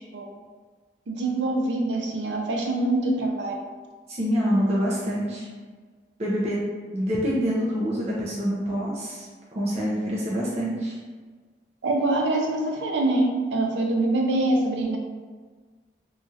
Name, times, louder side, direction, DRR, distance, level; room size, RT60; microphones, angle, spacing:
voice 1, 1.1-3.6 11.8-15.0, right 2 dB, 90° right, 1 dB, 0.5 m, -24 dB
voice 2, 4.1-5.5 6.2-6.6 6.9-9.3 9.5-11.0, equal, 35° right, -6 dB, 0.5 m, -26 dB
3.0 x 2.4 x 2.7 m, 1.5 s
head